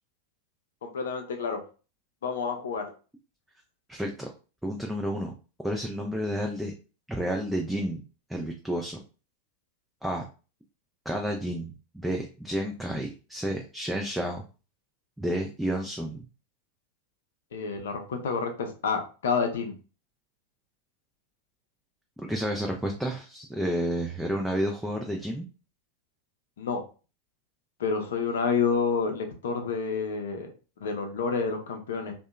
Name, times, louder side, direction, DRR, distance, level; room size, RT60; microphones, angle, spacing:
voice 1, 0.8-1.6 2.2-2.8 17.5-19.7 26.6-26.8 27.8-30.5 30.8-32.1, left 5 dB, 60° left, 5 dB, 0.5 m, -29 dB
voice 2, 3.9-4.3 4.6-5.3 5.6-6.7 7.1-8.0 8.3-9.0 10.0-10.2 11.1-14.4 15.2-16.2 22.3-25.5, equal, 5° right, 0 dB, 0.3 m, -30 dB
2.6 x 2.1 x 2.2 m, 0.34 s
figure-of-eight pair, 90°, 0 cm